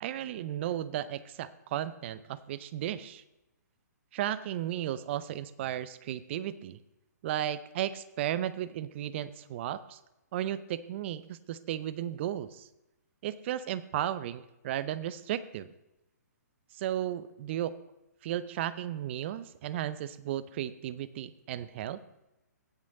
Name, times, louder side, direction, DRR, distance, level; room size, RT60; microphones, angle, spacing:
voice 1, 0.0-3.2 4.1-6.8 7.2-10.0 10.3-12.7 13.2-15.7 16.8-17.7 18.2-22.0, right 11 dB, 40° right, 17 dB, 0.6 m, -34 dB
16.5 x 6.3 x 4.0 m, 0.94 s
hypercardioid pair, 130°, 9 cm